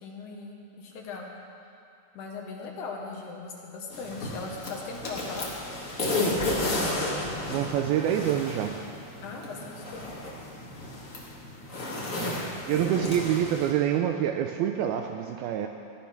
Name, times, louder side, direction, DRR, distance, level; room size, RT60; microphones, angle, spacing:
voice 1, 0.0-1.3 2.1-5.5 9.2-10.1, left 4 dB, 60° left, -1 dB, 2.3 m, -39 dB
sound 1, 3.9-13.7, left 2 dB, 35° left, 1.2 m, -33 dB
voice 2, 7.5-8.8 11.9-15.7, right 10 dB, 80° right, 5 dB, 2.2 m, -27 dB
16.5 x 10.5 x 5.9 m, 2.6 s
omnidirectional pair, 4.9 m